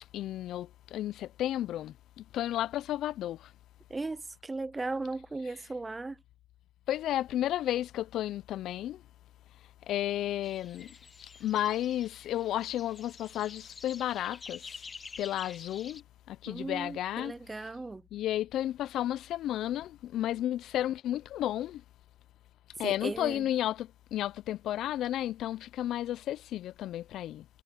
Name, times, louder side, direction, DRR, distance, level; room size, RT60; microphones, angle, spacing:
voice 1, 0.1-3.5 6.9-9.0 9.9-11.0 11.2-14.9 15.2-17.3 18.1-21.8 22.8-27.5, left 12 dB, 60° left, 0.3 m, -33 dB
voice 2, 3.9-6.2 16.5-18.0 22.8-23.5, right 3 dB, 15° right, 0.4 m, -37 dB
sound 1, 10.4-16.0, left 5 dB, 25° left, 1.0 m, -48 dB
cardioid pair, 150°, 0 cm